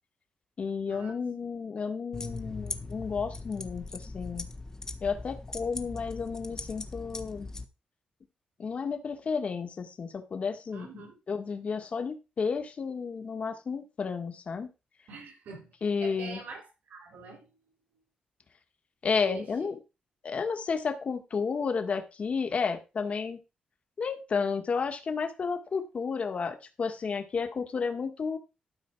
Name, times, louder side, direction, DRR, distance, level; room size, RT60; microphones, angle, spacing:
voice 1, 0.6-4.5 5.0-7.5 8.6-10.9 11.3-14.7 15.8-16.4 19.0-19.8 20.2-23.4 24.0-28.4, left 5 dB, 50° left, 6 dB, 1.6 m, -32 dB
sound 1, 2.1-7.7, left 3 dB, 20° left, 1.2 m, -40 dB
voice 2, 10.7-11.2 15.1-15.7 16.0-17.5 19.2-19.7, right 4 dB, 80° right, 0 dB, 4.2 m, -45 dB
12.5 x 5.1 x 4.7 m, 0.29 s
cardioid pair, 85°, 3 cm